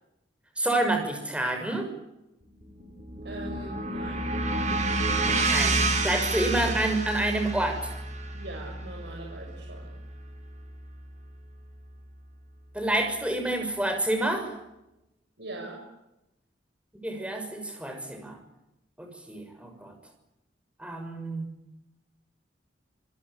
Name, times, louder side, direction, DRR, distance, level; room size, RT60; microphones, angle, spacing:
voice 1, 0.6-1.9 5.4-7.9 12.7-14.5 17.0-18.4 19.0-19.9 20.8-21.5, right 1 dB, 5° right, 5 dB, 6.4 m, -28 dB
sound 1, 2.6-10.9, right 2 dB, 40° right, 5.1 m, -29 dB
voice 2, 3.2-4.3 8.3-9.9 15.4-15.8, right 2 dB, 65° right, -1 dB, 7.0 m, -41 dB
27.5 x 21.5 x 8.5 m, 0.92 s
head